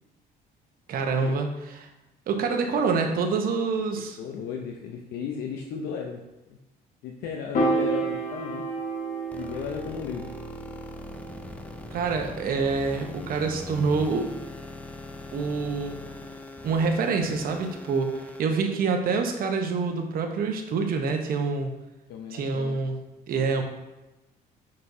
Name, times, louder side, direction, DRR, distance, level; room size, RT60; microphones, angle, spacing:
voice 1, 0.9-1.5 1.8-1.9 2.3-4.2 11.9-14.3 15.3-16.0 16.6-21.7 22.3-23.0 23.3-23.6, right 4 dB, 60° right, 4 dB, 1.0 m, -26 dB
voice 2, 4.2-6.2 6.5-6.6 7.0-8.7 9.3-10.3 22.1-22.8, left 6 dB, 75° left, 1 dB, 0.7 m, -35 dB
Piano, 7.5-13.9, right 2 dB, 55° left, 1.3 m, -32 dB
sound 1, 9.3-18.4, left 2 dB, 10° left, 0.5 m, -41 dB
6.8 x 5.3 x 2.7 m, 1.0 s
cardioid pair, 110°, 17 cm